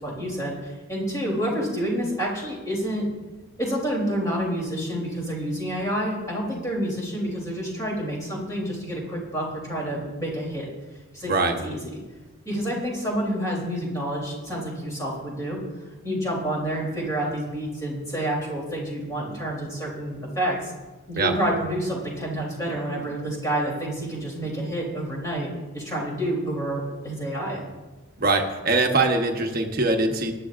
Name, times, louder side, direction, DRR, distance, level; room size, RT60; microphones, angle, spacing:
voice 1, 0.0-3.1 3.6-10.7 11.1-11.3 11.6-11.8 12.4-15.6 16.0-20.7 21.1-25.5 25.7-27.6, right 1 dB, 15° left, -3 dB, 3.4 m, -28 dB
voice 2, 28.2-30.3, right 3 dB, 45° right, 3 dB, 1.2 m, -22 dB
19.5 x 11.0 x 2.6 m, 1.2 s
head